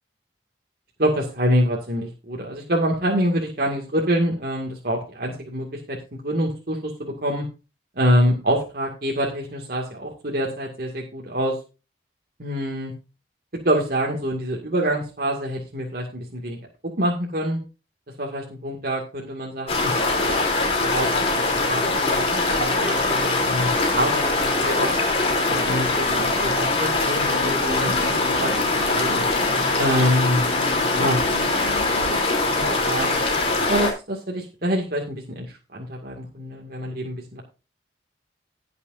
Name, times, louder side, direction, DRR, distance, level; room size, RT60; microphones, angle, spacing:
voice 1, 1.0-6.0 6.2-7.4 8.0-11.6 12.4-12.9 13.6-16.6 16.8-17.6 18.2-20.4 20.8-21.1 21.5-24.9 25.5-28.1 28.4-29.2 29.8-30.4 30.8-31.2 32.1-32.2 32.5-33.2 33.6-37.4, equal, 55° right, -2 dB, 2.2 m, -26 dB
sound 1, 19.7-33.9, left 3 dB, 30° left, 3.3 m, -22 dB
sound 2, 25.9-32.2, left 2 dB, 20° right, 3.2 m, -36 dB
19.0 x 6.8 x 2.7 m, 0.31 s
head